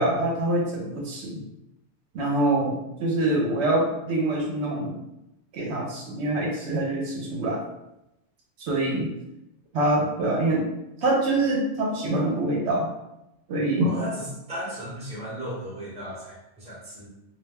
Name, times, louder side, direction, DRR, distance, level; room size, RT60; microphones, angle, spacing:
voice 1, 0.0-1.4 2.1-5.0 5.5-7.6 8.6-9.1 9.7-10.6 11.0-12.9 13.5-13.9, right 1 dB, 70° right, -1 dB, 0.8 m, -25 dB
voice 2, 13.8-17.1, equal, 5° right, -6 dB, 0.6 m, -35 dB
2.3 x 2.1 x 3.3 m, 0.90 s
omnidirectional pair, 1.2 m